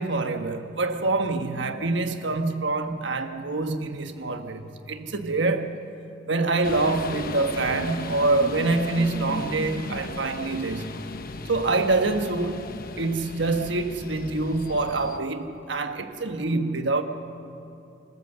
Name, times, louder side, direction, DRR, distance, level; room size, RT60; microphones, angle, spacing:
voice 1, 0.0-5.8 6.3-11.0 11.5-17.0, right 3 dB, 70° right, 1.3 m, -26 dB
sound 1, 6.6-15.2, left 2 dB, 50° left, 1.0 m, -36 dB
28.0 x 15.5 x 6.9 m
head